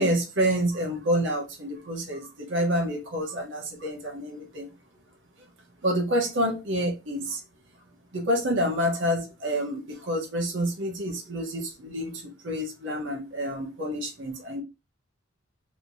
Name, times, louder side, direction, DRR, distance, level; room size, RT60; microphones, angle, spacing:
voice 1, 0.0-4.7 5.8-7.4 8.1-14.6, equal, 65° right, 1.0 m, -28 dB
3.2 x 2.8 x 2.7 m
head